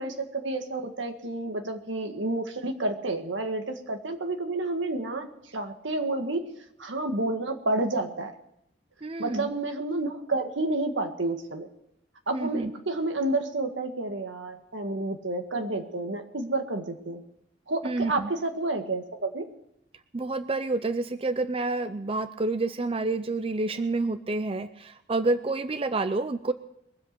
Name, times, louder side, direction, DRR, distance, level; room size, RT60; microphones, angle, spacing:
voice 1, 0.0-6.5 6.8-8.3 9.2-11.7 12.3-17.2 17.7-19.5, right 2 dB, 85° right, 6 dB, 1.8 m, -30 dB
voice 2, 9.0-9.5 12.3-12.7 17.8-18.3 20.1-26.5, right 2 dB, 30° right, 11 dB, 0.5 m, -28 dB
22.5 x 8.0 x 6.8 m, 0.78 s
head